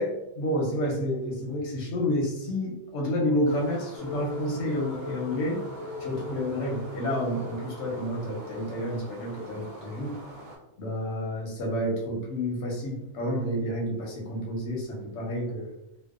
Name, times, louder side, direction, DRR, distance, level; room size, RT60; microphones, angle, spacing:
voice 1, 0.0-5.6 6.0-10.2 10.8-15.7, equal, 60° left, -2 dB, 0.8 m, -30 dB
sound 1, 3.5-10.6, right 1 dB, 60° right, 0.8 m, -45 dB
sound 2, 4.0-9.0, left 3 dB, 85° left, 1.2 m, -40 dB
2.6 x 2.0 x 2.4 m, 0.91 s
omnidirectional pair, 1.7 m